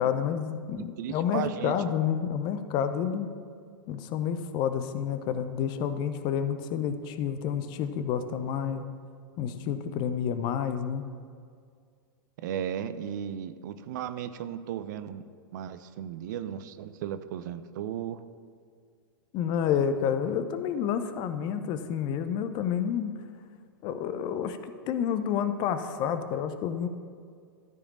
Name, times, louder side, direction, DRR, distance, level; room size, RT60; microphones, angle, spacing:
voice 1, 0.0-3.3 3.9-8.8 9.4-11.0 19.3-23.1 23.8-26.9, left 8 dB, 40° left, 10 dB, 0.7 m, -29 dB
voice 2, 1.0-1.8 12.4-15.3 15.5-18.2, right 9 dB, 55° right, 12 dB, 0.5 m, -35 dB
13.5 x 5.0 x 6.9 m, 2.2 s
figure-of-eight pair, 95°, 12 cm